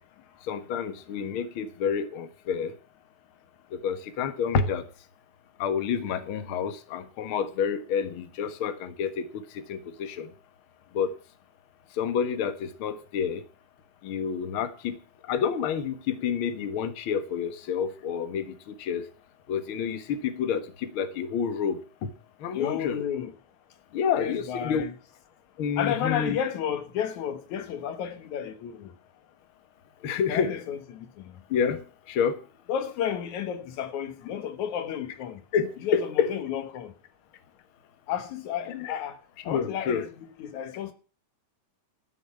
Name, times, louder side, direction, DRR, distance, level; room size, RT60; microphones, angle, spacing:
voice 1, 0.4-2.7 3.7-4.8 5.6-10.3 10.9-11.1 11.9-13.4 14.0-15.0 15.3-19.1 19.5-22.1 22.4-23.0 23.9-24.8 25.6-26.4 30.0-30.5 31.5-32.4 35.5-36.3 38.7-39.0 39.5-40.1, left 7 dB, 55° left, 1.9 m, -29 dB
voice 2, 22.5-23.3 24.1-24.9 25.8-28.9 30.3-31.4 32.7-35.4 35.8-36.9 38.1-39.2 39.4-40.9, left 9 dB, 80° left, 2.7 m, -32 dB
14.0 x 6.5 x 8.4 m
omnidirectional pair, 3.4 m